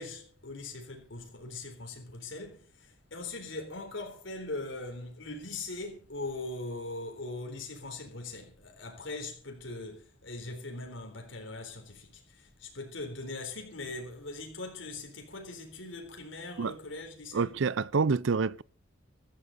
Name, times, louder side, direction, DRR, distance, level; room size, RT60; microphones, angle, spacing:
voice 1, 0.0-17.6, left 2 dB, 90° left, 3.8 m, -41 dB
voice 2, 17.3-18.6, right 4 dB, 90° right, 0.5 m, -27 dB
15.0 x 14.0 x 4.1 m
head